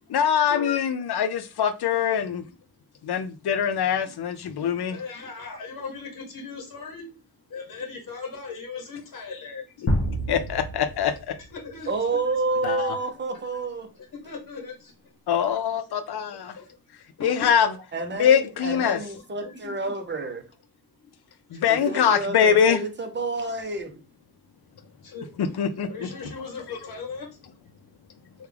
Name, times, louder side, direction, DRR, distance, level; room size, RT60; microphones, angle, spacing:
voice 1, 0.1-2.4 3.0-5.0 10.2-11.3 12.6-13.0 15.3-16.6 17.2-17.7 18.2-19.0 21.5-22.8 25.4-26.1, left 8 dB, 80° left, 0.6 m, -23 dB
voice 2, 4.9-10.2 11.5-11.9 14.1-15.3 16.3-17.7 18.6-19.1 19.4-19.6 20.9-21.1 21.5-22.1 24.4-25.4 25.9-28.5, left 4 dB, 55° left, 1.0 m, -39 dB
sound 1, 9.9-11.8, equal, 35° left, 0.7 m, -28 dB
voice 3, 11.9-13.9 17.9-20.5 21.7-23.9, right 3 dB, 30° right, 0.7 m, -29 dB
3.4 x 2.3 x 3.3 m
wide cardioid pair, 130°, 38 cm